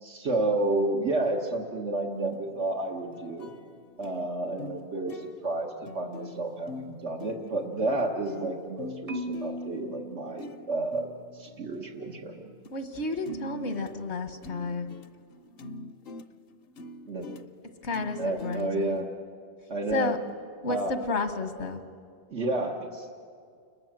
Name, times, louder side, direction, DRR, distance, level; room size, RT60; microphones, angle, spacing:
voice 1, 0.0-3.5 4.0-11.1 11.3-12.5 17.1-17.3 18.2-19.1 19.7-20.2 20.7-20.9 22.3-23.1, right 2 dB, 85° right, -1 dB, 1.9 m, -30 dB
sound 1, 2.1-4.2 4.6-4.8 5.1-12.7 13.0-19.1, left 3 dB, 60° left, 0.9 m, -44 dB
Marimba xylophone, 9.1-11.3, equal, 35° right, 0.8 m, -39 dB
voice 2, 12.7-15.0 17.8-19.1 19.9-20.2 20.6-21.8, left 3 dB, 85° left, 8 dB, 1.8 m, -32 dB
28.5 x 21.5 x 7.5 m, 2.2 s
omnidirectional pair, 1.1 m